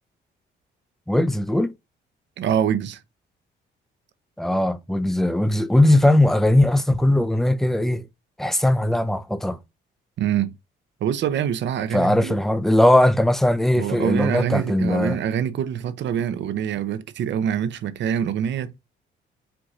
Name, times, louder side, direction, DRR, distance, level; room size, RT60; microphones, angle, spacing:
voice 1, 1.1-1.7 4.4-8.0 8.4-9.6 11.9-15.2, left 1 dB, ahead, 0.4 m, -19 dB
voice 2, 2.4-3.0 10.2-10.5 11.0-12.4 13.8-18.7, right 9 dB, 65° right, 0.6 m, -25 dB
4.6 x 2.6 x 3.7 m
cardioid pair, 90°, 20 cm